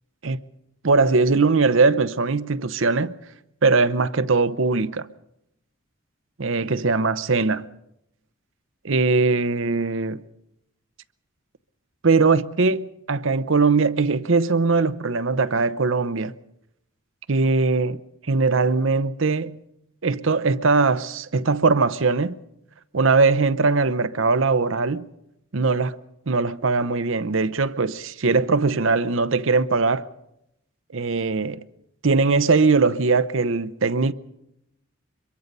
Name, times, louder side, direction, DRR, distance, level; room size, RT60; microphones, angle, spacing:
voice 1, 0.8-3.1 3.6-5.1 6.4-7.7 8.8-10.2 12.0-16.3 17.3-18.0 18.3-19.6 20.0-22.3 22.9-25.1 25.5-25.9 26.3-30.0 30.9-31.6 32.0-34.1, right 4 dB, 65° right, 0.8 m, -20 dB
24.5 x 22.5 x 5.4 m
head